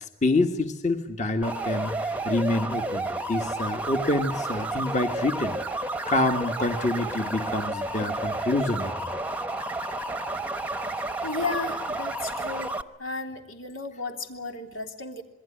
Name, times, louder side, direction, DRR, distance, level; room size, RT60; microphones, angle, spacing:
voice 1, 0.0-5.6 6.1-9.1, left 2 dB, 35° left, 5 dB, 1.7 m, -27 dB
sound 1, 1.4-12.8, right 2 dB, 10° right, 0.9 m, -31 dB
voice 2, 11.2-12.7 13.0-15.2, left 3 dB, 90° left, 4 dB, 3.4 m, -34 dB
27.0 x 21.5 x 10.0 m, 0.90 s
head